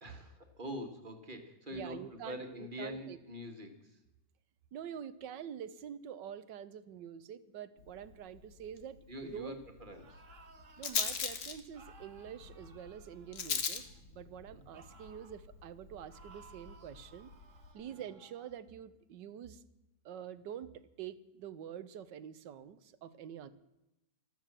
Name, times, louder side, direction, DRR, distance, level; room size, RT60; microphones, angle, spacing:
voice 1, 0.0-4.0 9.1-10.2, equal, 30° right, 5 dB, 1.9 m, -44 dB
voice 2, 1.7-3.2 4.7-9.0 9.3-9.6 10.8-17.3 17.7-19.6 20.0-23.5, right 9 dB, 85° right, 15 dB, 1.5 m, -46 dB
Rattle, 7.8-17.7, left 6 dB, 55° left, 1.7 m, -42 dB
sound 1, 9.8-11.2 11.7-14.0 14.7-15.4 16.1-18.6, right 4 dB, 45° right, 1.8 m, -60 dB
13.5 x 13.0 x 7.5 m, 0.91 s
omnidirectional pair, 1.9 m